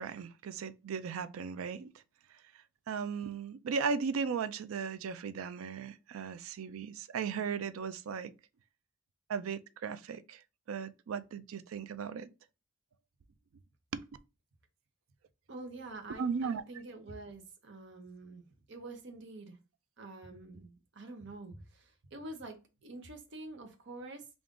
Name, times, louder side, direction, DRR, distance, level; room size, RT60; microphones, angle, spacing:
voice 1, 0.0-1.9 2.9-8.3 9.3-10.4 10.7-12.3 13.9-14.0 16.2-16.6, right 6 dB, 80° right, 0.4 m, -36 dB
voice 2, 15.5-19.6 20.0-24.3, right 2 dB, 55° right, 0.7 m, -47 dB
3.6 x 2.5 x 3.6 m
head